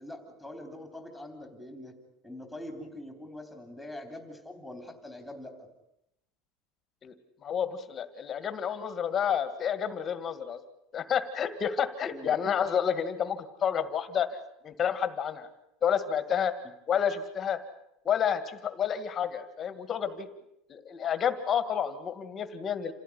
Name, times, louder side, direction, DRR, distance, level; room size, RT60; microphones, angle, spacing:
voice 1, 0.0-1.9 2.2-5.7 12.1-12.4, left 1 dB, ahead, 5 dB, 3.7 m, -43 dB
voice 2, 7.4-10.6 10.9-14.4 14.6-15.5 15.8-16.5 16.9-17.6 18.1-20.3 20.7-22.9, left 8 dB, 25° left, 11 dB, 1.9 m, -30 dB
28.0 x 16.0 x 10.0 m, 0.82 s
cardioid pair, 165°, 0 cm